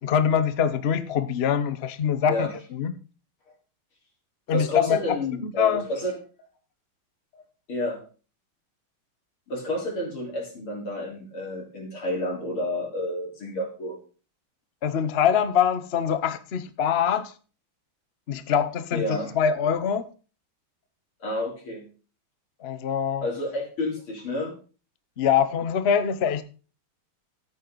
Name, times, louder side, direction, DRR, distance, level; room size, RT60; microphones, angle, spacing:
voice 1, 0.0-3.0 4.5-5.0 5.4-5.8 14.8-17.3 18.3-20.0 22.6-23.2 25.2-26.4, left 8 dB, 55° left, 0.7 m, -24 dB
voice 2, 4.5-6.1 7.7-8.0 9.5-14.0 18.9-19.3 21.2-21.8 23.2-24.5, left 1 dB, 80° left, 4.9 m, -30 dB
13.5 x 9.0 x 4.0 m
omnidirectional pair, 2.3 m